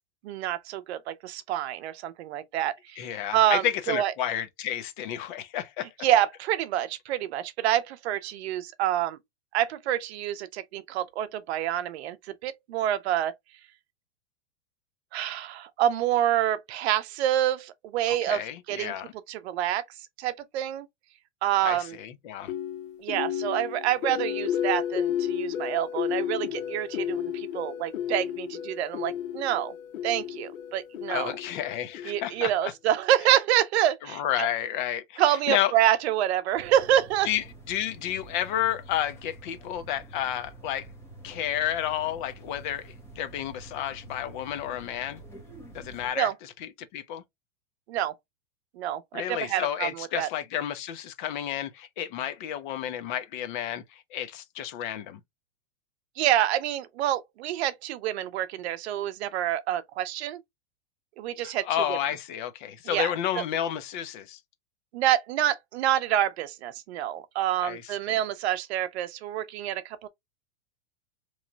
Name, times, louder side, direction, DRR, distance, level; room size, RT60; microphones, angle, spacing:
voice 1, 0.2-3.1 3.3-4.1 6.0-9.2 9.5-12.2 12.4-13.3 15.1-18.4 18.7-18.9 19.3-19.8 20.2-20.9 21.4-22.0 23.0-29.7 30.0-31.3 32.1-34.5 35.2-37.3 46.2-46.3 47.9-48.1 48.8-50.3 56.2-60.4 61.2-62.0 62.9-63.4 64.9-70.1, right 12 dB, 60° right, 0.7 m, -27 dB
voice 2, 3.0-5.9 18.1-19.1 21.6-22.5 31.1-32.7 34.1-35.7 37.3-40.9 41.2-45.2 45.7-47.2 49.1-55.2 61.4-64.4 67.6-68.2, left 11 dB, 40° left, 0.6 m, -31 dB
sound 1, 22.5-32.6, left 10 dB, 75° left, 1.0 m, -32 dB
sound 2, 36.5-46.1, right 2 dB, 5° left, 0.9 m, -47 dB
4.1 x 3.1 x 2.4 m
supercardioid pair, 160°, 38 cm